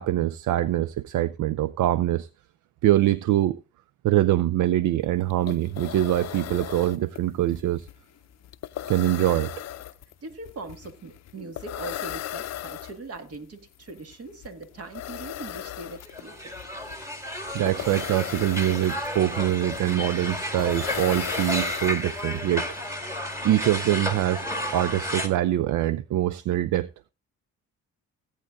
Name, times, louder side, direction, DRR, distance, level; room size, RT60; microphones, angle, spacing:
voice 1, 0.0-2.3 2.8-3.6 4.0-7.9 8.9-9.5 17.5-22.7 23.4-24.5 24.7-26.9, right 13 dB, 75° right, 0.5 m, -24 dB
sound 1, 5.0-5.1 5.3-22.4, left 12 dB, 60° left, 0.5 m, -38 dB
voice 2, 10.2-16.5, right 3 dB, 50° right, 2.0 m, -40 dB
sound 2, 16.1-25.3, left 1 dB, 10° right, 1.9 m, -32 dB
16.5 x 8.9 x 2.6 m
cardioid pair, 105°, 30 cm